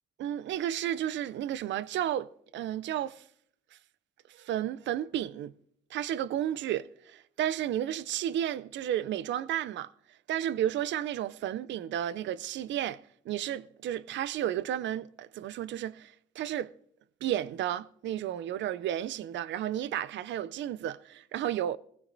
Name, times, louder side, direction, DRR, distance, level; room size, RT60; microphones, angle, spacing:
voice 1, 0.2-3.2 4.3-5.5 5.9-9.9 10.3-13.0 13.3-16.7 17.2-21.8, right 11 dB, 65° right, 0.4 m, -32 dB
18.5 x 16.5 x 2.6 m
cardioid pair, 90°, 20 cm